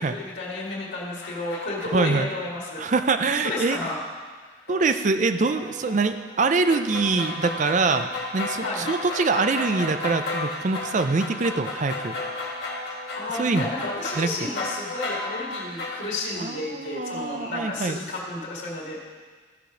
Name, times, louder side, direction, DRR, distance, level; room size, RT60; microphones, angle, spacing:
voice 1, 0.0-2.9 3.4-4.0 8.6-8.9 13.1-19.0, left 2 dB, 85° left, -6 dB, 2.1 m, -32 dB
sound 1, 0.7-2.2 3.1-3.2 3.5-4.0 4.7-5.0 5.5-16.1, left 2 dB, 60° left, 1.6 m, -33 dB
voice 2, 1.9-2.3 2.8-3.8 4.7-12.2 13.4-13.7 14.2-14.3 16.4-18.0, right 4 dB, 40° right, 9 dB, 0.5 m, -24 dB
14.5 x 5.1 x 5.1 m, 1.5 s
head